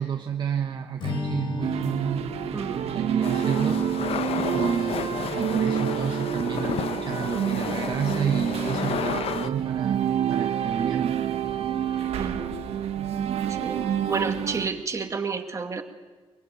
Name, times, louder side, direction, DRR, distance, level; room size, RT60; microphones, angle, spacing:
voice 1, 0.0-11.2 13.4-13.6, right 7 dB, 45° right, 5 dB, 1.1 m, -31 dB
Strum, 1.0-5.4, left 3 dB, 55° left, 5.6 m, -37 dB
sound 1, 1.6-14.7, right 9 dB, 85° right, 1.7 m, -28 dB
sound 2, 3.2-9.5, left 9 dB, 75° left, 0.8 m, -32 dB
voice 2, 12.2-12.6 13.6-13.8 14.1-15.8, right 5 dB, 30° right, 5 dB, 2.1 m, -30 dB
23.0 x 22.0 x 9.4 m, 1.3 s
wide cardioid pair, 150°, 10 cm